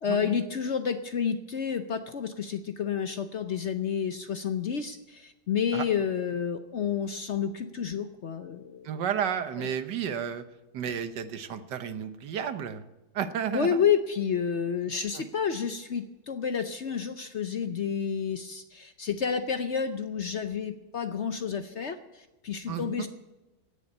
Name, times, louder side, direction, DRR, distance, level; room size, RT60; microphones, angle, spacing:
voice 1, 0.0-9.0 9.6-9.7 13.5-23.1, left 7 dB, 55° left, 9 dB, 0.8 m, -30 dB
voice 2, 8.8-10.4 10.7-12.8 13.1-13.8 15.1-15.2 22.7-23.1, right 8 dB, 75° right, 10 dB, 1.6 m, -32 dB
16.5 x 7.0 x 9.9 m, 1.0 s
omnidirectional pair, 1.9 m